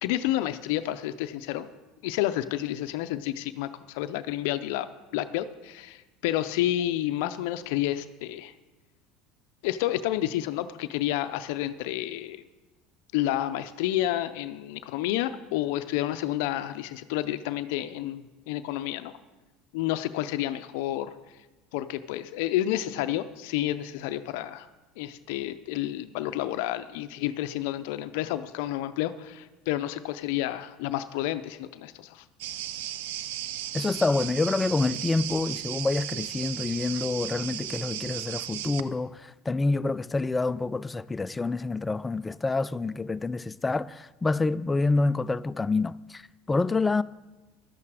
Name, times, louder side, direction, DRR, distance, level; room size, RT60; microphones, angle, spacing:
voice 1, 0.0-1.7 2.0-8.5 9.6-12.4 13.1-19.1 19.7-21.1 21.7-24.7 25.0-32.2, left 13 dB, 75° left, 0.5 m, -30 dB
sound 1, 32.4-38.8, right 12 dB, 80° right, 0.5 m, -35 dB
voice 2, 33.7-47.0, left 3 dB, 15° left, 0.3 m, -27 dB
12.0 x 8.6 x 4.8 m
supercardioid pair, 90°, 0 cm